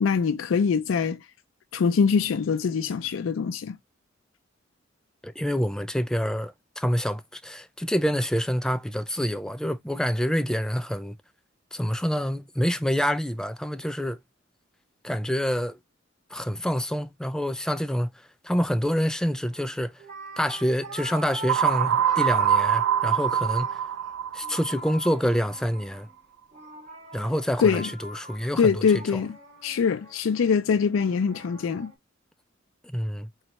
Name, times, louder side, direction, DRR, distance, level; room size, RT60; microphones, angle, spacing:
voice 1, 0.0-1.2 1.7-3.8 27.6-27.9 28.6-29.3 29.6-31.9, left 6 dB, 90° left, 0.4 m, -23 dB
voice 2, 5.2-11.2 11.7-14.2 15.0-15.8 16.3-20.0 20.4-23.8 24.3-26.1 27.1-29.2 32.8-33.3, equal, 5° left, 0.3 m, -27 dB
sound 1, 19.5-19.7 20.0-24.0 24.4-26.1 26.5-31.9, right 1 dB, 40° right, 2.2 m, -43 dB
sound 2, 21.5-25.3, right 9 dB, 85° right, 0.3 m, -24 dB
4.1 x 3.2 x 2.8 m
head